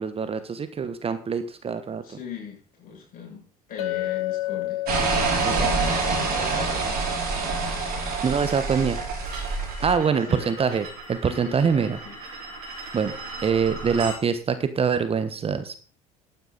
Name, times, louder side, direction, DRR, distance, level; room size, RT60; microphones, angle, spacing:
voice 1, 0.0-2.2 5.4-5.5 8.2-9.0 9.8-12.0 12.9-13.1 13.4-15.7, right 6 dB, 30° right, 11 dB, 1.2 m, -24 dB
voice 2, 2.0-4.9 5.5-6.9 10.0-10.6 11.2-12.2, left 6 dB, 45° left, -1 dB, 7.0 m, -39 dB
Chink clink, 3.8-8.0, left 16 dB, 75° left, 0.9 m, -32 dB
sound 1, 4.9-9.9, right 4 dB, 50° right, 6.0 m, -26 dB
sound 2, 9.3-14.2, right 3 dB, 75° right, 5.4 m, -38 dB
12.5 x 9.4 x 4.1 m, 0.40 s
figure-of-eight pair, 60°, 19 cm